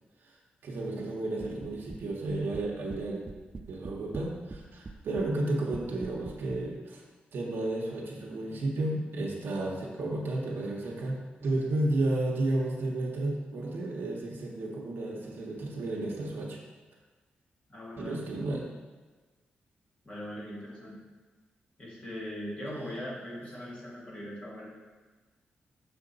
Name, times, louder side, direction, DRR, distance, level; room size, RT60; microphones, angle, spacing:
voice 1, 0.6-3.2 3.7-7.0 7.3-16.6 18.0-18.7, right 2 dB, 75° right, -2 dB, 0.9 m, -32 dB
sound 1, 1.4-2.0 2.3-3.0 3.3-4.6 4.9-5.3 5.7-6.6, right 3 dB, 25° right, 0.3 m, -41 dB
voice 2, 17.7-18.2 20.0-21.0 21.8-24.8, equal, 35° left, -6 dB, 2.0 m, -40 dB
6.6 x 4.3 x 3.9 m, 1.3 s
wide cardioid pair, 130°, 4 cm